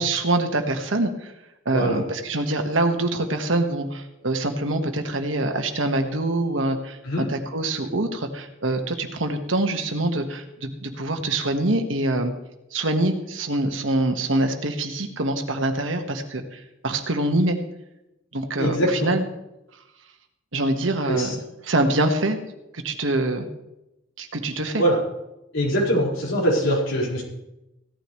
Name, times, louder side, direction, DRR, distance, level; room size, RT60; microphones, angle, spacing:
voice 1, 0.0-1.3 1.6-12.3 12.7-17.6 18.3-19.2 20.5-21.3 21.6-22.4 22.7-23.5 24.2-24.8, right 2 dB, 80° right, 5 dB, 1.6 m, -25 dB
voice 2, 18.6-19.1 21.1-21.3 24.8-25.0 25.5-27.2, equal, 70° left, -4 dB, 5.1 m, -23 dB
16.5 x 13.0 x 3.2 m, 0.90 s
head